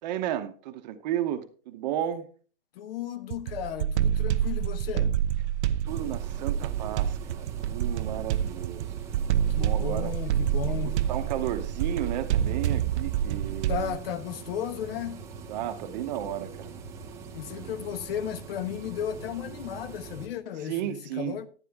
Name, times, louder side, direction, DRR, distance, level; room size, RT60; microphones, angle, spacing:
voice 1, 0.0-2.3 5.8-8.9 9.5-10.1 10.7-14.0 15.5-16.8 17.5-17.8 20.6-21.4, right 11 dB, 40° right, 0.8 m, -33 dB
voice 2, 2.7-5.2 9.5-11.0 13.7-15.3 17.3-21.5, left 9 dB, 55° left, 1.1 m, -34 dB
sound 1, 3.3-14.0, right 10 dB, 80° right, 0.6 m, -28 dB
sound 2, 5.8-20.3, right 5 dB, 10° right, 0.5 m, -43 dB
10.5 x 9.7 x 3.5 m
supercardioid pair, 165°, 34 cm